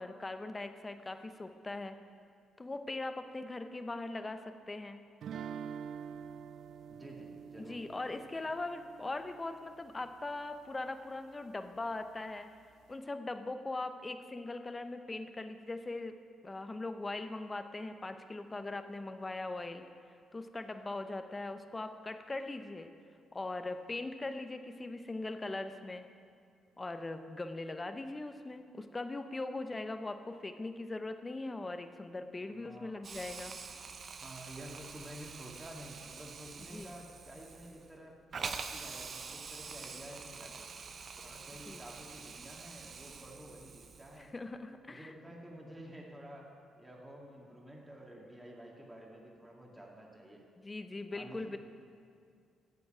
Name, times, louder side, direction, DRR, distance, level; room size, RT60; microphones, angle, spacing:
voice 1, 0.0-2.0 2.6-5.0 7.6-12.5 12.9-16.1 16.4-19.8 20.3-22.9 23.3-26.1 26.8-33.6 36.7-36.9 41.7-41.8 44.2-45.1 50.6-51.6, left 2 dB, 20° left, 8 dB, 0.8 m, -40 dB
sound 1, 5.2-10.1, right 7 dB, 70° right, 0.3 m, -46 dB
voice 2, 6.9-7.8 32.5-33.0 34.2-40.7 41.2-44.3 44.9-50.4 51.1-51.6, right 1 dB, 10° right, -2 dB, 2.1 m, -50 dB
Hiss, 33.0-44.3, right 5 dB, 45° right, 0.8 m, -46 dB
9.8 x 7.0 x 8.9 m, 2.3 s
cardioid pair, 90°, 0 cm